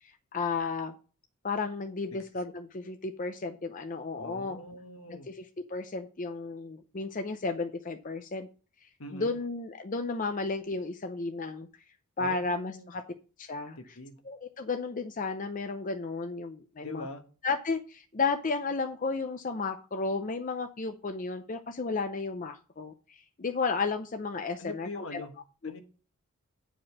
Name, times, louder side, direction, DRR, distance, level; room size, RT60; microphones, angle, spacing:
voice 1, 0.0-0.9 1.4-4.6 5.1-8.5 8.8-11.7 12.2-13.0 13.4-13.8 14.3-17.1 17.4-25.2, left 4 dB, 35° left, 6 dB, 0.6 m, -33 dB
voice 2, 2.1-2.5 4.2-5.3 9.0-9.4 12.2-12.9 13.8-14.2 16.8-17.2 24.6-25.3 25.6-25.8, left 2 dB, 70° left, 6 dB, 1.3 m, -43 dB
9.3 x 5.0 x 5.9 m, 0.37 s
head